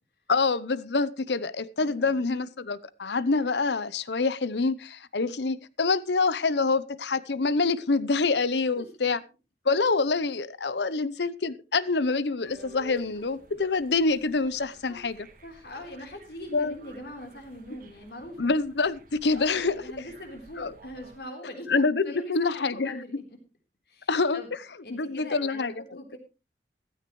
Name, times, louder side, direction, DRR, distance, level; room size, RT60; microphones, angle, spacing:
voice 1, 0.3-9.2 9.6-15.2 16.5-16.8 18.4-20.0 20.6-20.7 21.7-23.0 24.1-24.6 24.9-26.0, left 4 dB, 75° left, 0.8 m, -26 dB
voice 2, 1.8-2.2 8.8-8.9 14.9-15.0 15.4-18.5 19.3-23.1 23.9-24.5 24.8-26.2, left 1 dB, 60° left, 3.9 m, -42 dB
sound 1, 12.4-21.2, right 1 dB, 50° right, 2.2 m, -52 dB
15.0 x 13.5 x 3.2 m
head